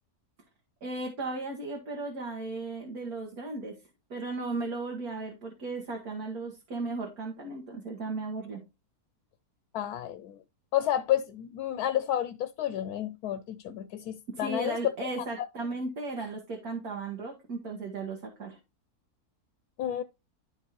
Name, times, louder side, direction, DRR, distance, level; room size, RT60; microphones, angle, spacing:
voice 1, 0.8-3.8 4.1-8.6 13.7-13.8 14.3-18.6, right 3 dB, 70° right, 2.1 m, -36 dB
voice 2, 9.7-10.4 10.7-14.7 15.4-15.5 19.8-20.0, left 11 dB, 80° left, 1.1 m, -31 dB
11.5 x 4.7 x 3.0 m
omnidirectional pair, 1.6 m